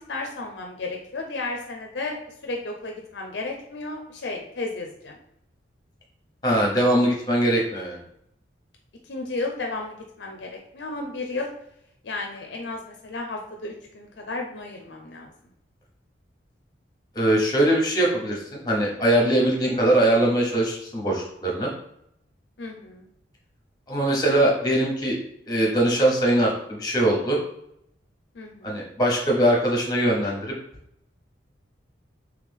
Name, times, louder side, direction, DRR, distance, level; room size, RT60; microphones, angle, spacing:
voice 1, 0.1-5.2 9.0-11.5 12.0-15.3 22.6-23.1 28.3-28.8, left 3 dB, 65° left, 2 dB, 0.5 m, -33 dB
voice 2, 6.4-8.0 17.1-21.7 23.9-25.2 25.5-27.4 28.6-30.5, right 1 dB, 20° left, -1 dB, 1.0 m, -21 dB
3.4 x 3.3 x 3.5 m, 0.75 s
head